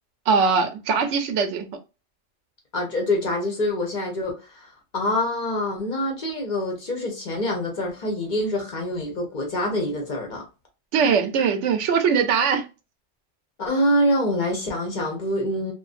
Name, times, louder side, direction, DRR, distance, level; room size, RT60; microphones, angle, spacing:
voice 1, 0.3-1.7 10.9-12.7, right 6 dB, 85° right, 0.9 m, -21 dB
voice 2, 2.7-4.7 4.9-10.4 13.6-15.7, left 1 dB, 45° left, 0.8 m, -25 dB
2.5 x 2.1 x 2.4 m
omnidirectional pair, 1.2 m